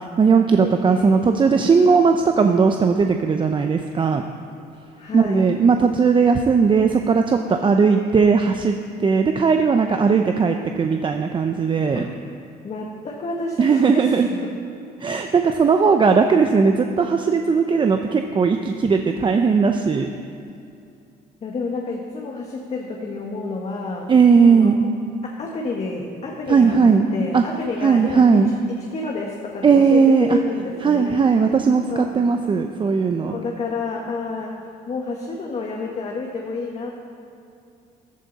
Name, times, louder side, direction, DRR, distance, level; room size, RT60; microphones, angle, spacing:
voice 1, 0.0-4.2 5.1-8.7 9.0-12.1 13.6-14.3 15.0-20.1 24.1-24.8 26.5-27.1 27.3-27.4 27.8-28.5 29.6-30.4 30.8-33.3, right 5 dB, 30° right, 5 dB, 0.6 m, -17 dB
voice 2, 0.6-1.2 5.0-5.5 11.9-12.1 12.6-14.5 21.4-24.1 24.4-24.8 25.2-28.2 28.8-31.2 31.9-32.3 33.2-37.1, left 3 dB, 40° left, -1 dB, 1.5 m, -30 dB
14.0 x 12.5 x 4.1 m, 2.5 s
cardioid pair, 110°, 17 cm